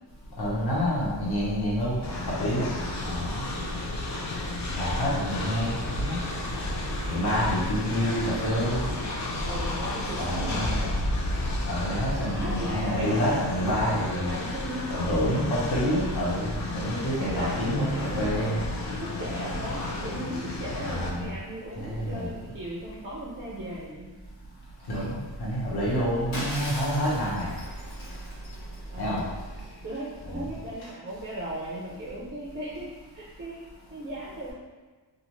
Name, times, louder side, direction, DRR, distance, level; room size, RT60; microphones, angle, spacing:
voice 1, 0.4-2.0 2.4-2.7 3.0-3.4 4.7-6.2 7.1-8.9 10.2-10.7 11.7-14.3 14.9-18.5 20.8-21.3 21.8-22.3 24.9-25.1 25.4-27.5 29.0-29.2 30.3-30.4, equal, 60° left, -6 dB, 1.0 m, -27 dB
Train, 2.0-21.1, left 1 dB, 45° left, 0.5 m, -32 dB
voice 2, 9.5-11.0 11.9-13.4 14.1-14.9 15.2-15.3 15.9-16.2 17.2-18.4 19.0-24.1 28.9-29.2 29.8-34.5, right 1 dB, 30° right, -4 dB, 0.4 m, -37 dB
Shatter, 26.3-29.0, left 1 dB, 85° left, 1.0 m, -38 dB
2.5 x 2.4 x 2.9 m, 1.3 s
wide cardioid pair, 135°, 42 cm